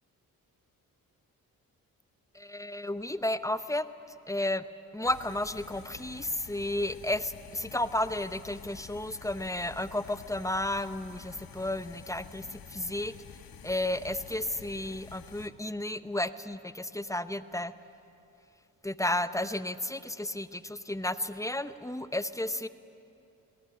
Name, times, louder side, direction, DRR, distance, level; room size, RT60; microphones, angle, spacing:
voice 1, 2.3-3.9 4.3-4.7 4.9-13.4 13.6-17.7 18.8-22.7, left 1 dB, 10° left, 12 dB, 0.9 m, -32 dB
sound 1, 5.0-15.5, left 7 dB, 70° left, 1.6 m, -49 dB
20.5 x 19.5 x 10.0 m, 2.7 s
cardioid pair, 65°, 36 cm